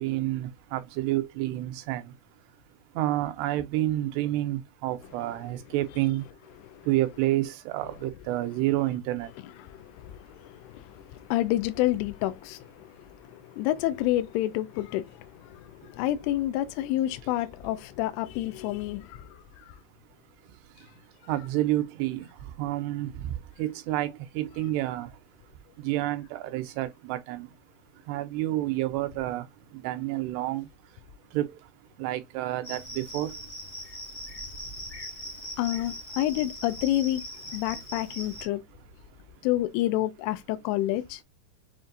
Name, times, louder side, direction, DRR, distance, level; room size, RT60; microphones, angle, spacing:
voice 1, 0.0-2.0 3.0-6.2 6.9-9.3 21.3-22.3 22.6-23.1 23.6-24.1 24.4-25.1 25.8-27.5 28.1-29.4 29.8-30.6 31.3-31.5 32.0-33.3, right 15 dB, 90° right, 2.8 m, -29 dB
voice 2, 9.6-11.0 11.3-12.9 13.3-19.3 35.6-37.2 37.5-38.6 39.4-41.2, left 14 dB, 85° left, 2.5 m, -29 dB
Cricket, 32.6-38.4, equal, 30° left, 0.6 m, -40 dB
7.1 x 2.6 x 2.6 m
omnidirectional pair, 4.7 m